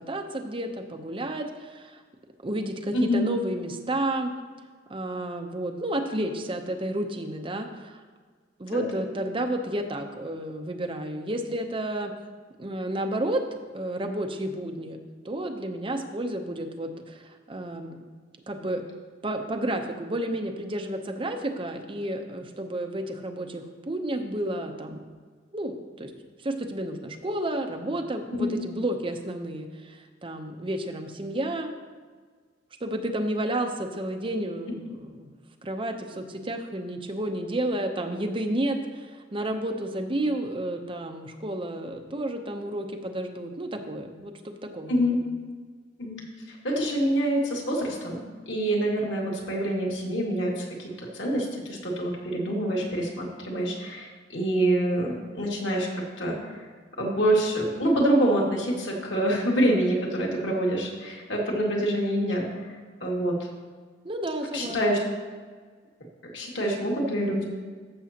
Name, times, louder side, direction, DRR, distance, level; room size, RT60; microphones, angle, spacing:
voice 1, 0.0-2.0 2.4-4.3 4.9-8.0 8.6-12.1 12.6-15.0 15.2-18.0 18.5-18.8 19.2-25.0 25.5-26.1 26.4-31.7 32.8-34.9 35.2-35.4 35.6-45.3 64.0-65.0, right 1 dB, 30° right, 4 dB, 0.7 m, -31 dB
voice 2, 2.9-3.3 8.7-9.0 28.3-28.6 44.9-45.2 46.0-46.2 46.5-55.9 56.2-56.4 57.0-62.7 63.0-63.3 64.5-65.0 66.3-67.4, right 1 dB, 90° left, -2 dB, 2.1 m, -26 dB
14.5 x 6.2 x 2.9 m, 1.5 s
head